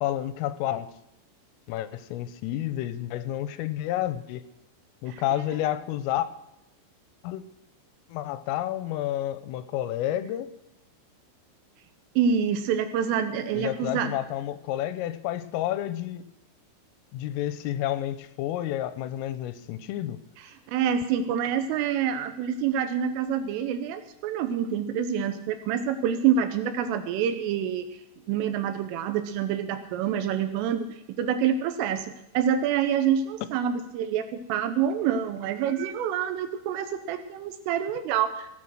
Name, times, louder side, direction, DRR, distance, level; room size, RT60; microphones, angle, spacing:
voice 1, 0.0-0.9 1.7-4.4 5.0-6.3 7.2-7.4 8.1-10.5 13.5-16.3 17.1-20.2, left 13 dB, 90° left, 12 dB, 3.4 m, -30 dB
voice 2, 12.2-14.1 20.7-27.9 28.3-30.9 31.2-38.5, right 8 dB, 85° right, 9 dB, 3.4 m, -27 dB
17.0 x 9.2 x 6.3 m, 0.86 s
omnidirectional pair, 5.8 m